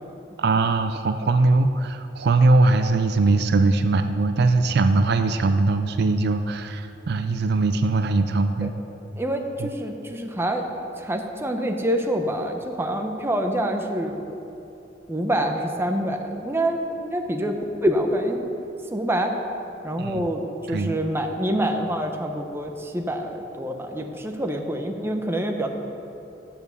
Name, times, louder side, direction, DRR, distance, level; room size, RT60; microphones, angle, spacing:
voice 1, 0.4-8.7 9.6-9.7 20.0-20.2 20.7-21.0, right 3 dB, 60° right, 9 dB, 0.4 m, -21 dB
voice 2, 9.2-10.7 11.0-14.4 15.1-18.5 18.9-19.4 19.8-20.4 20.7-25.7, right 1 dB, 15° right, 3 dB, 0.7 m, -26 dB
8.6 x 7.1 x 6.8 m, 2.9 s
head